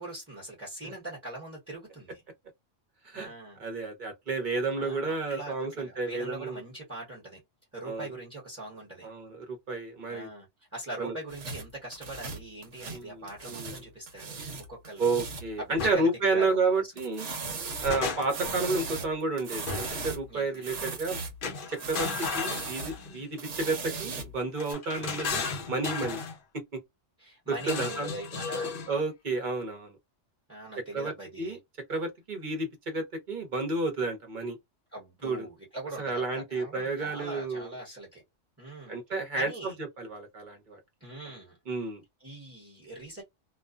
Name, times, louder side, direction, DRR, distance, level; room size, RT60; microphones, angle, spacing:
voice 1, 0.0-2.2 3.1-3.6 4.8-7.4 7.7-9.1 10.1-10.5 10.7-15.2 15.6-16.6 18.5-18.6 20.3-20.7 25.0-25.1 27.2-28.8 30.5-31.6 34.9-38.2 38.6-39.0 39.3-39.7 41.0-41.6 42.2-43.2, right 2 dB, 10° right, 1.0 m, -42 dB
voice 2, 3.6-6.6 7.8-8.1 9.0-10.3 11.0-11.2 12.9-13.8 15.0-17.3 17.8-21.2 21.7-22.1 22.3-26.2 26.5-26.8 27.5-28.1 28.9-30.0 30.9-31.6 31.9-34.6 35.2-35.5 36.0-37.7 38.9-40.8 41.2-41.3 41.7-42.0, right 3 dB, 45° right, 1.0 m, -31 dB
sound 1, 11.3-13.8 14.1-15.5 17.0-20.3 20.5-21.4 21.7-23.0 23.4-24.7, right 4 dB, 70° right, 1.1 m, -38 dB
sound 2, 15.8-16.0 17.4-18.5 19.7-20.1 21.4-23.3 24.6-26.4 27.6-28.9, left 4 dB, 50° left, 0.7 m, -34 dB
2.5 x 2.2 x 2.3 m
omnidirectional pair, 1.3 m